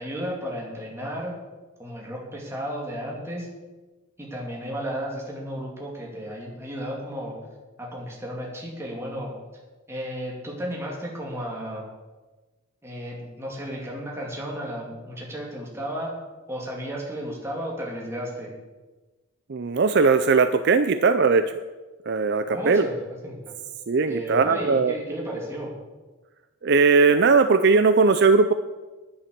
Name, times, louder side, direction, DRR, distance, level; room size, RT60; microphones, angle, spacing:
voice 1, 0.0-1.3 1.8-3.5 4.2-7.3 7.8-9.3 9.9-11.8 12.8-16.1 16.5-18.5 22.5-23.5 24.1-25.7, equal, 10° right, -3 dB, 2.9 m, -33 dB
voice 2, 19.5-21.4 22.1-22.9 23.9-24.9 26.6-28.5, right 4 dB, 50° right, 10 dB, 0.5 m, -19 dB
10.5 x 10.0 x 6.8 m, 1.2 s
head